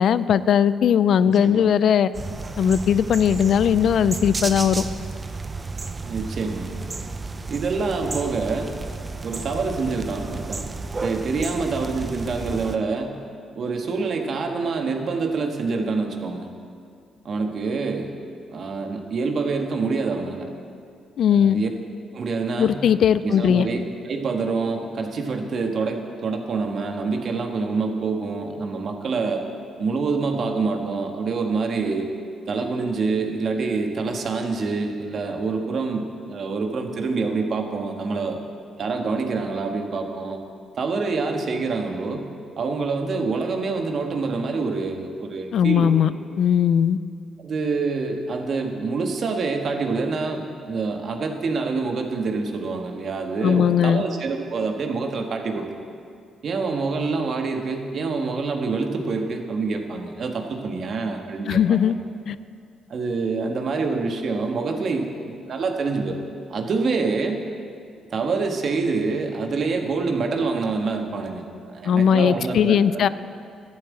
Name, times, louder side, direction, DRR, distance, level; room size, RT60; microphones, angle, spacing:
voice 1, 0.0-2.1 2.6-4.8 21.2-21.6 22.6-23.7 45.5-46.1 46.4-47.0 53.4-54.0 61.5-61.9 62.3-62.4 71.8-73.1, left 8 dB, 65° left, 16 dB, 0.4 m, -19 dB
voice 2, 1.2-1.6 6.0-6.7 7.5-8.7 9.2-10.6 11.0-13.2 13.5-16.5 17.2-18.1 18.5-20.5 21.3-21.7 22.1-22.8 23.2-29.4 29.8-32.1 32.5-38.4 38.8-40.4 40.7-42.3 42.6-45.9 47.4-55.7 56.4-61.8 62.9-66.2 66.5-67.4 68.1-73.1, right 4 dB, 55° right, 4 dB, 1.5 m, -26 dB
sound 1, 2.1-12.8, right 3 dB, 25° right, 0.8 m, -32 dB
12.5 x 7.5 x 8.6 m, 2.3 s
cardioid pair, 90°, 0 cm